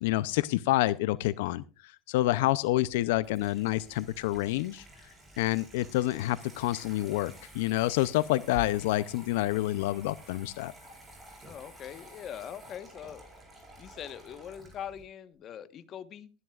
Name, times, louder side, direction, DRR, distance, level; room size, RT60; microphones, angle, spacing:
voice 1, 0.0-4.9 5.4-10.7, left 16 dB, 80° left, 16 dB, 0.5 m, -28 dB
Water tap faucet / Sink (filling or washing), 2.8-15.0, right 1 dB, 20° right, 5.0 m, -51 dB
voice 2, 11.4-13.2 13.8-16.3, left 9 dB, 40° left, 12 dB, 1.2 m, -42 dB
22.0 x 11.0 x 2.4 m, 0.31 s
supercardioid pair, 140°, 0 cm